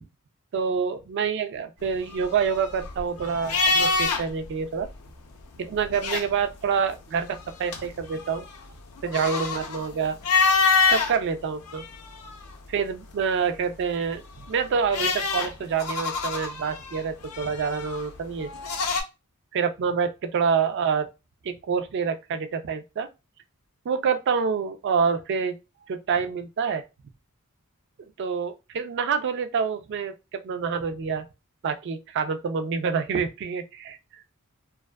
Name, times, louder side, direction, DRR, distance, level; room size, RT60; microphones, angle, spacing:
voice 1, 0.5-4.9 5.6-8.5 9.0-10.2 10.9-11.8 12.7-14.2 14.5-18.5 19.5-21.1 21.4-23.1 23.9-25.6 25.9-26.8 28.2-31.3 31.6-34.0, right 6 dB, 55° right, 0.3 m, -27 dB
sound 1, 2.0-4.5 4.8-4.9 5.7-6.6 7.2-11.1 11.7-12.7 14.2-19.0, left 4 dB, 90° left, 0.5 m, -26 dB
2.4 x 2.3 x 2.2 m
head